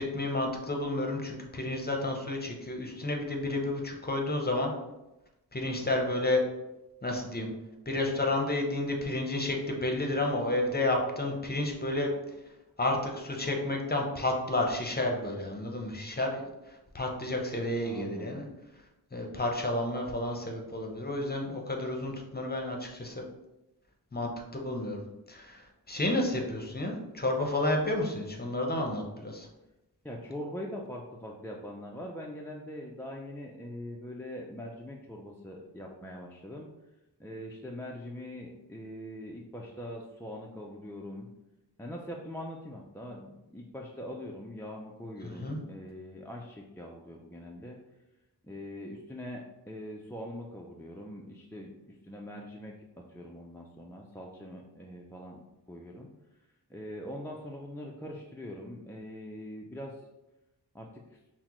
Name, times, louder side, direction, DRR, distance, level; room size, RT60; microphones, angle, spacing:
voice 1, 0.0-4.7 5.5-6.4 7.0-7.5 7.9-12.1 12.8-16.4 16.9-18.4 19.1-23.2 24.1-25.0 25.3-25.6 25.9-29.5 45.2-45.6, left 2 dB, 25° left, 1 dB, 0.7 m, -31 dB
voice 2, 17.8-18.5 30.0-36.7 37.2-41.3 41.8-47.8 48.4-55.4 55.7-56.1 56.7-60.0 60.7-61.2, left 1 dB, 5° left, -2 dB, 0.4 m, -42 dB
5.7 x 2.1 x 3.0 m, 0.98 s
wide cardioid pair, 60°, 41 cm